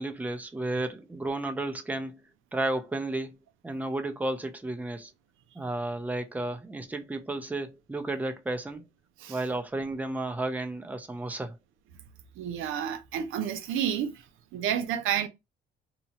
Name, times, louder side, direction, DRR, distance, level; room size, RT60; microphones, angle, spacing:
voice 1, 0.0-2.2 2.5-3.4 3.6-5.1 5.5-8.8 9.3-11.6, right 2 dB, 10° right, 0.5 m, -32 dB
voice 2, 12.4-14.3 14.5-15.3, right 9 dB, 90° right, 0.5 m, -30 dB
2.8 x 2.1 x 2.7 m
cardioid pair, 90°, 20 cm